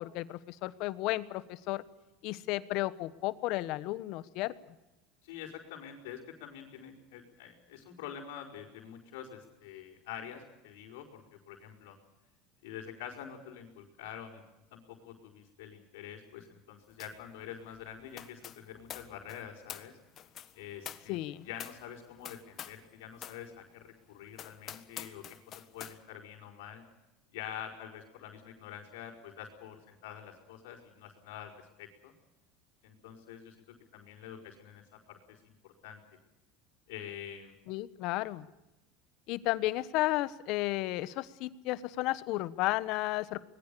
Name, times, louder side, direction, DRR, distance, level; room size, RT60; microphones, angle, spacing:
voice 1, 0.0-1.8 2.2-4.5 21.1-21.5 37.7-38.5 39.3-43.4, left 17 dB, 60° left, 16 dB, 1.2 m, -33 dB
voice 2, 5.2-12.0 12.6-14.4 14.7-20.0 20.5-26.8 27.3-32.1 32.8-36.0 36.9-37.5, left 9 dB, 85° left, -6 dB, 4.9 m, -46 dB
sound 1, 17.0-17.3 17.5-22.9 23.2-23.4 23.9-24.0 24.3-26.0, left 10 dB, 40° left, 1.5 m, -47 dB
25.0 x 21.0 x 6.9 m, 0.97 s
supercardioid pair, 120°, 0 cm